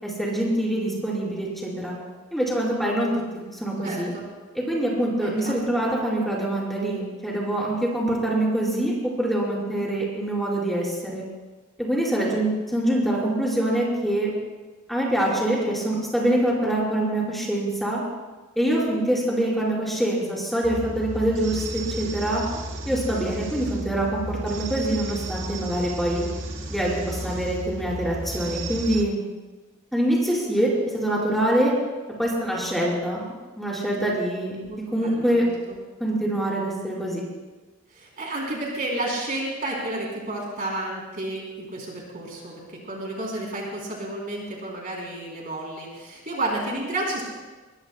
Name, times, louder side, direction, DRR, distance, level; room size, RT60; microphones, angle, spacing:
voice 1, 0.0-1.9 2.3-4.1 4.5-11.2 11.8-14.3 14.9-18.0 18.6-22.4 22.9-26.2 26.7-29.2 29.9-31.7 32.2-35.4 36.0-37.2, right 1 dB, ahead, -5 dB, 4.4 m, -25 dB
voice 2, 3.8-4.2 5.2-5.5 34.6-35.5 37.9-47.2, right 2 dB, 45° right, -3 dB, 3.3 m, -31 dB
sound 1, 20.6-29.0, right 1 dB, 65° right, 1.5 m, -33 dB
21.5 x 20.5 x 2.2 m, 1.2 s
head